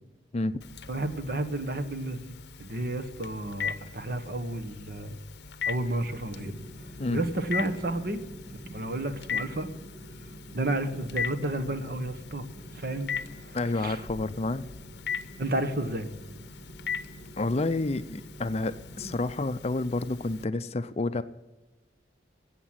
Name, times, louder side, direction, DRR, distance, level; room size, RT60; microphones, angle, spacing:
Telephone, 0.6-20.4, left 6 dB, 70° left, 0.7 m, -40 dB
voice 1, 0.9-2.2 2.6-5.2 5.7-6.5 7.1-8.2 8.7-9.7 10.5-12.5 12.7-13.1 13.4-14.0 15.4-16.1, right 1 dB, 55° right, 9 dB, 1.3 m, -31 dB
sound 1, 6.3-19.1, right 1 dB, 25° right, 5.9 m, -48 dB
voice 2, 13.5-14.7 17.4-21.2, left 2 dB, 35° left, 13 dB, 0.5 m, -29 dB
15.0 x 8.1 x 7.6 m, 1.1 s
head